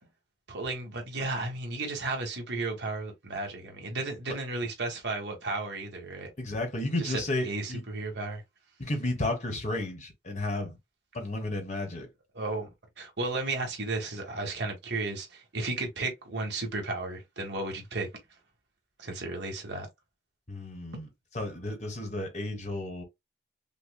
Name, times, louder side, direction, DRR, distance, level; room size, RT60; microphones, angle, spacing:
voice 1, 0.5-6.3 7.0-8.4 12.3-12.7 13.0-18.1 19.0-19.9, right 2 dB, 65° right, 1.3 m, -34 dB
voice 2, 6.4-7.8 8.8-10.7 11.1-12.1 20.5-21.1 21.3-23.0, left 2 dB, 40° left, 1.2 m, -32 dB
5.5 x 2.2 x 2.2 m
head